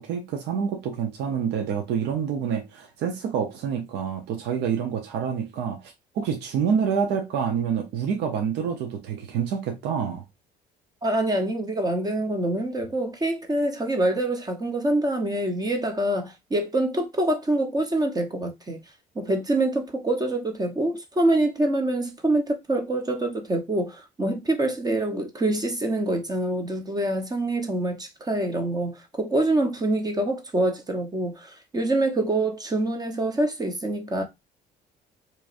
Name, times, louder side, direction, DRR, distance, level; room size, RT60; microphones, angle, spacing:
voice 1, 0.0-10.2, right 7 dB, 80° right, 0.8 m, -27 dB
voice 2, 11.0-18.8 19.1-34.2, right 1 dB, 25° right, 1.0 m, -25 dB
4.7 x 3.1 x 2.6 m
cardioid pair, 110°, 17 cm